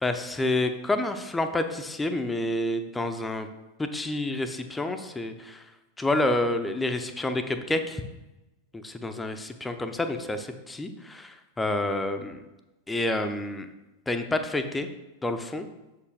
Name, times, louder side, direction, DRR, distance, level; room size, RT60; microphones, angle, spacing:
voice 1, 0.0-3.5 3.8-5.6 6.0-8.0 8.7-12.4 12.9-13.7 14.1-14.9 15.2-15.7, left 2 dB, 10° left, 8 dB, 0.5 m, -28 dB
6.7 x 4.5 x 3.4 m, 1.0 s
figure-of-eight pair, 90°, 0 cm